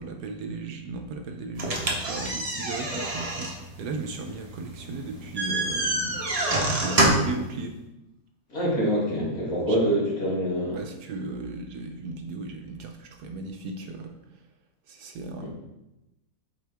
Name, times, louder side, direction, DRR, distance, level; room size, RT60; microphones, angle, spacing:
voice 1, 0.0-7.8 9.7-9.8 10.7-14.5 14.9-15.5, right 3 dB, 70° right, 4 dB, 1.1 m, -36 dB
sound 1, 1.6-7.4, right 1 dB, 30° right, 0.7 m, -27 dB
voice 2, 8.5-10.8 15.4-15.5, equal, 50° left, -4 dB, 2.2 m, -25 dB
7.8 x 4.5 x 3.4 m, 0.94 s
omnidirectional pair, 2.0 m